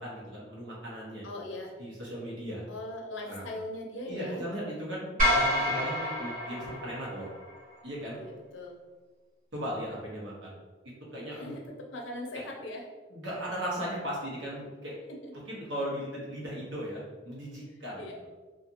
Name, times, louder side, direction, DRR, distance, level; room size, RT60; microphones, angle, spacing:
voice 1, 0.0-1.3 1.8-2.6 3.3-3.4 4.1-7.3 7.8-8.2 9.5-10.5 11.1-11.5 12.3-12.4 13.1-14.9 15.5-18.1, equal, 75° right, -5 dB, 1.0 m, -37 dB
voice 2, 1.2-1.7 2.7-4.4 8.1-8.7 11.3-12.8 15.2-15.3 18.0-18.2, left 1 dB, 80° left, 1 dB, 0.5 m, -40 dB
sound 1, 5.2-7.6, equal, 45° right, 1.2 m, -28 dB
2.8 x 2.4 x 2.5 m, 1.3 s
head